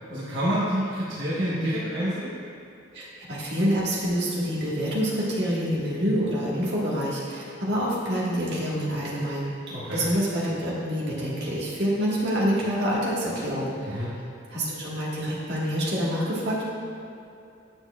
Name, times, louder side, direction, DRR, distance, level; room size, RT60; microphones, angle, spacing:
voice 1, 0.1-2.3 9.7-10.0 13.9-14.1, equal, 80° right, -9 dB, 1.3 m, -28 dB
voice 2, 2.9-9.5 9.9-14.1 14.5-16.6, equal, 60° right, -7 dB, 1.7 m, -27 dB
8.9 x 6.9 x 2.4 m, 2.6 s
head